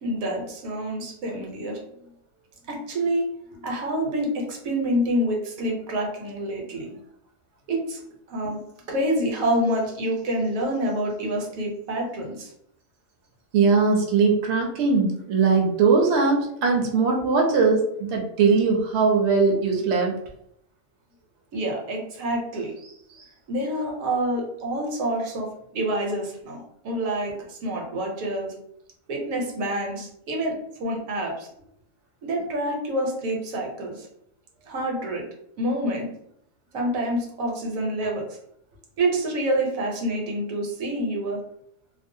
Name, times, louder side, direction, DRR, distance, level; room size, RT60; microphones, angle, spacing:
voice 1, 0.0-1.8 2.6-3.2 3.6-6.9 7.7-8.0 8.3-8.6 8.9-12.5 21.5-25.5 25.7-28.5 29.1-31.5 32.2-34.1 34.7-35.3 35.6-36.1 36.7-38.2 39.0-41.4, right 1 dB, 80° right, 0 dB, 1.1 m, -27 dB
voice 2, 13.5-20.1, right 4 dB, 65° right, 1 dB, 0.8 m, -20 dB
2.6 x 2.0 x 2.6 m, 0.73 s
omnidirectional pair, 1.4 m